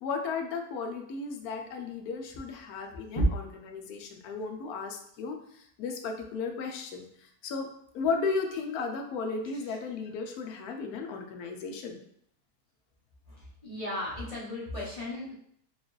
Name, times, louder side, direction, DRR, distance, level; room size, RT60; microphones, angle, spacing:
voice 1, 0.0-12.0, left 4 dB, 70° left, 4 dB, 1.0 m, -35 dB
voice 2, 13.6-15.3, left 1 dB, 25° left, -7 dB, 0.7 m, -35 dB
4.4 x 2.4 x 3.1 m, 0.68 s
omnidirectional pair, 1.8 m